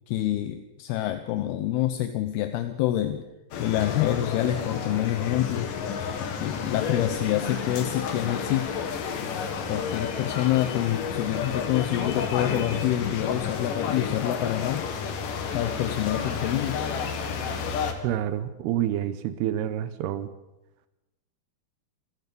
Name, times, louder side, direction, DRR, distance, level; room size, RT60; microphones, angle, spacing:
voice 1, 0.1-3.2 3.6-8.8 9.7-14.9 15.5-16.8, left 13 dB, 80° left, 9 dB, 2.9 m, -27 dB
sound 1, 3.5-17.9, left 6 dB, 60° left, 3.3 m, -31 dB
voice 2, 18.0-20.3, right 11 dB, 85° right, 12 dB, 2.9 m, -28 dB
27.5 x 15.5 x 6.9 m, 0.99 s
omnidirectional pair, 4.6 m